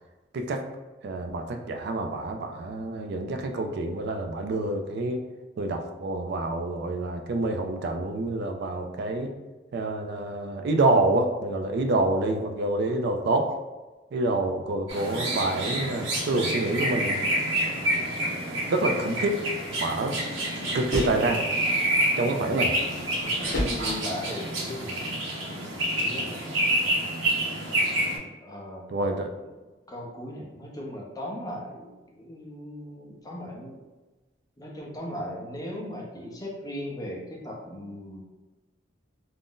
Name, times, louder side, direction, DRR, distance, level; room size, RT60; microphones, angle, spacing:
voice 1, 1.0-5.2 5.6-9.3 9.7-13.5 14.1-17.2 18.7-19.4 19.8-20.2 20.7-21.4 22.2-22.8 28.9-29.3, right 2 dB, 60° right, 4 dB, 0.3 m, -27 dB
sound 1, 14.9-28.2, right 1 dB, 75° right, 0.7 m, -28 dB
sound 2, 20.1-21.3 22.1-24.2, left 1 dB, 60° left, 0.8 m, -34 dB
voice 2, 23.2-25.2 25.7-26.5 28.4-28.8 29.4-29.5 29.9-33.8 34.6-38.2, left 1 dB, 20° left, -2 dB, 0.6 m, -38 dB
2.5 x 2.0 x 3.7 m, 1.2 s
head